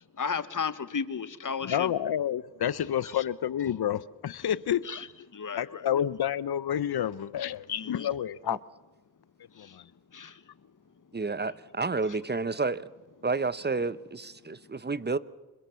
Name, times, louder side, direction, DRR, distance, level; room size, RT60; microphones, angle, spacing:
voice 1, 0.2-1.9 4.8-5.1 5.3-5.8 7.7-8.1 9.6-9.8 10.1-10.4, left 6 dB, 55° left, 1.4 m, -34 dB
voice 2, 1.6-4.8 5.5-8.6 9.6-9.8, left 10 dB, 85° left, 0.8 m, -29 dB
voice 3, 11.1-12.9 13.2-15.2, right 4 dB, 25° right, 1.0 m, -30 dB
25.5 x 22.0 x 7.0 m
cardioid pair, 55°, 37 cm